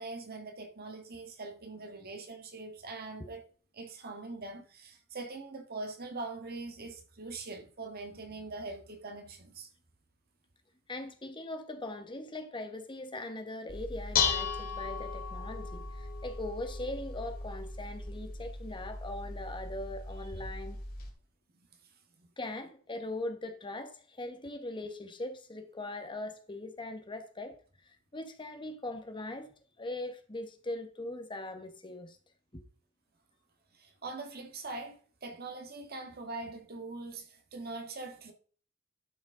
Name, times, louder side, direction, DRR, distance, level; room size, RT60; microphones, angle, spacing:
voice 1, 0.0-3.4 3.7-9.7 22.2-22.3 33.7-38.3, right 3 dB, 45° right, 1.5 m, -42 dB
voice 2, 10.9-20.8 22.4-27.6 27.9-29.5 29.8-32.2, left 2 dB, 25° left, 1.0 m, -40 dB
Dishes pots and pans, 13.7-21.1, left 5 dB, 45° left, 2.3 m, -36 dB
12.0 x 6.1 x 3.7 m
head